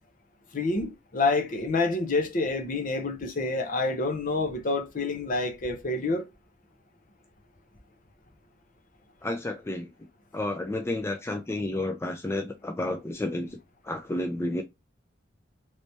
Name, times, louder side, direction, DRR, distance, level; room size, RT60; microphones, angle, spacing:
voice 1, 0.5-6.3, left 3 dB, 45° left, 0.6 m, -28 dB
voice 2, 9.2-9.9 10.3-13.6 13.8-14.6, left 1 dB, 15° left, 0.3 m, -31 dB
3.3 x 3.1 x 2.6 m
head